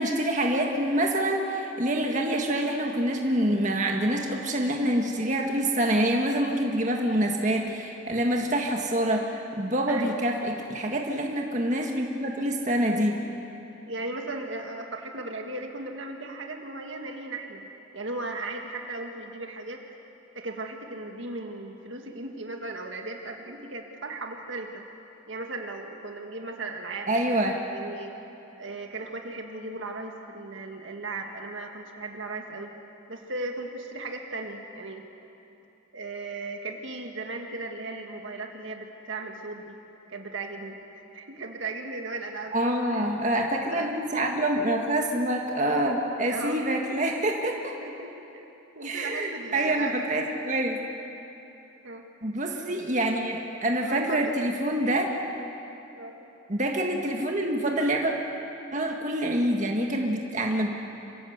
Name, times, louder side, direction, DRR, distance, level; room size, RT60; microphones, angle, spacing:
voice 1, 0.0-13.2 27.1-27.6 42.5-47.8 48.8-50.8 52.2-55.1 56.5-58.1 58.7-60.7, right 1 dB, 35° right, 1 dB, 1.8 m, -26 dB
voice 2, 13.9-17.6 17.9-19.8 20.3-24.8 25.3-27.4 27.7-28.1 28.6-32.7 33.1-35.0 35.9-39.8 40.1-43.1 43.7-43.9 46.0-46.9 47.8-50.0 51.8-52.1 53.8-54.3 56.0-56.2, right 2 dB, 65° right, 3 dB, 1.9 m, -37 dB
26.5 x 17.0 x 8.1 m, 2.9 s
head